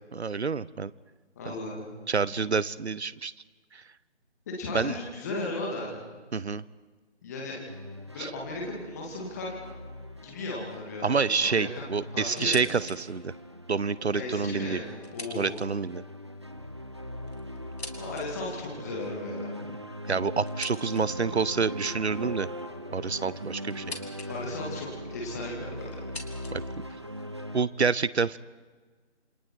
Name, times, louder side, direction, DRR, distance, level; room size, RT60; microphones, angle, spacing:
voice 1, 0.1-0.9 1.5-1.6 2.1-3.3 3.7-3.8 4.7-4.9 6.3-6.6 8.2-8.3 11.0-13.3 13.7-14.8 15.3-16.0 20.1-22.5 22.9-24.0 26.5-26.6 27.5-28.4, right 5 dB, 65° right, 20 dB, 0.8 m, -28 dB
voice 2, 1.4-1.9 4.5-6.0 7.2-7.6 8.1-9.6 10.2-11.8 12.1-12.6 14.1-15.6 18.0-19.6 24.3-26.1, left 2 dB, 15° left, -2 dB, 2.4 m, -36 dB
sound 1, 7.7-27.7, equal, 25° right, 0.6 m, -40 dB
sound 2, 12.3-13.0 13.4-13.5 14.3-16.0 16.9-18.3 20.5-21.3 22.5-24.3 24.6-25.2 25.9-27.3, left 3 dB, 60° left, 3.1 m, -44 dB
27.5 x 27.0 x 4.6 m, 1.4 s
figure-of-eight pair, 165°, 35 cm